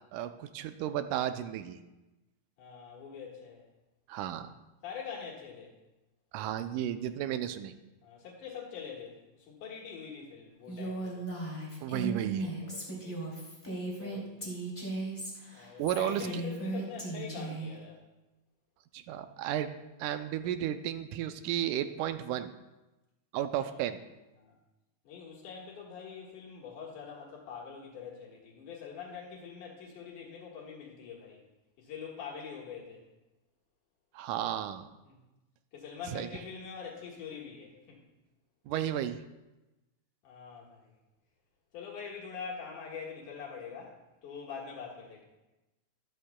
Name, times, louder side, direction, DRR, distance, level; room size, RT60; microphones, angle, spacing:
voice 1, 0.1-1.8 4.1-4.5 6.3-7.7 11.8-12.5 15.8-16.4 18.9-22.5 23.3-24.0 34.1-34.9 36.1-36.3 38.7-39.2, right 11 dB, 85° right, 10 dB, 2.0 m, -33 dB
voice 2, 2.6-3.6 4.8-5.7 8.0-11.3 12.1-13.2 14.0-14.6 15.5-18.0 24.4-24.6 25.0-31.4 31.8-33.0 35.0-35.2 35.7-38.0 40.2-40.9 41.7-44.0 44.2-45.3, left 6 dB, 80° left, -3 dB, 3.0 m, -44 dB
Female speech woman speaking, 10.7-17.7, right 2 dB, 5° left, 2.1 m, -37 dB
13.0 x 12.0 x 2.2 m, 1.0 s
omnidirectional pair, 3.6 m